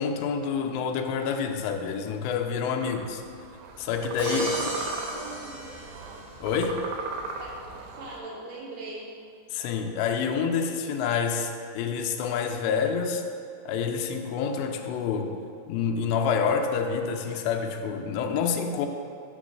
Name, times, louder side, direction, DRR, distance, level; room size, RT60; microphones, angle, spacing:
voice 1, 0.0-3.2 3.8-4.5 6.4-6.8 9.5-13.2 13.7-15.4 15.7-18.9, left 6 dB, 90° left, 4 dB, 2.0 m, -27 dB
sound 1, 2.8-8.2, right 3 dB, 90° right, 2.8 m, -38 dB
Crash cymbal, 4.2-6.4, right 1 dB, 45° right, 1.9 m, -35 dB
voice 2, 4.3-5.7 7.4-9.1, right 2 dB, 60° right, -6 dB, 2.1 m, -41 dB
6.7 x 3.8 x 6.3 m, 2.4 s
omnidirectional pair, 4.8 m